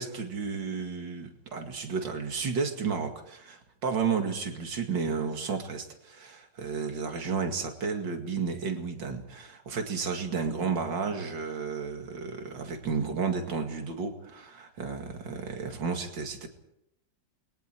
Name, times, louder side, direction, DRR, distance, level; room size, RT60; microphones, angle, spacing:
voice 1, 0.0-16.5, right 5 dB, 70° right, 4 dB, 2.9 m, -32 dB
29.0 x 22.5 x 4.6 m, 0.78 s
omnidirectional pair, 2.1 m